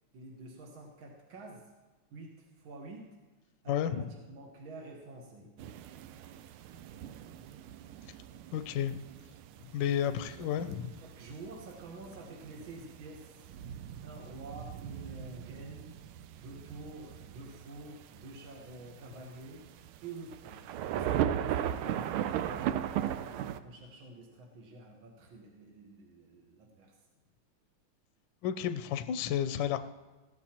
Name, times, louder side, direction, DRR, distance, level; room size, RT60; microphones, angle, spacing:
voice 1, 0.1-1.7 2.1-3.1 3.6-5.5 9.8-10.7 11.0-13.5 14.0-15.9 16.3-19.6 20.0-20.7 20.9-23.2 23.6-27.0, right 2 dB, 70° right, -1 dB, 2.1 m, -48 dB
voice 2, 3.7-4.1 8.5-9.0 9.7-10.9 28.4-29.8, left 9 dB, 70° left, 10 dB, 1.2 m, -31 dB
sound 1, 5.6-23.6, right 10 dB, 85° right, 1.5 m, -38 dB
20.5 x 15.0 x 3.0 m, 1.2 s
omnidirectional pair, 2.3 m